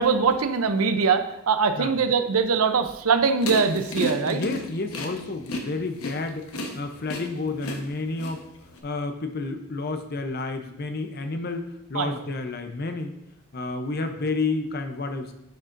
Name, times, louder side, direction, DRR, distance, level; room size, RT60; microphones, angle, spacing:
voice 1, 0.0-4.4 11.9-12.1, right 5 dB, 85° right, 9 dB, 0.6 m, -22 dB
sound 1, 3.4-8.8, left 1 dB, 85° left, 1.1 m, -32 dB
voice 2, 4.3-6.5 6.7-8.4 8.8-13.1 13.5-15.3, left 3 dB, 45° left, 6 dB, 0.7 m, -30 dB
10.0 x 6.4 x 2.6 m, 0.86 s
head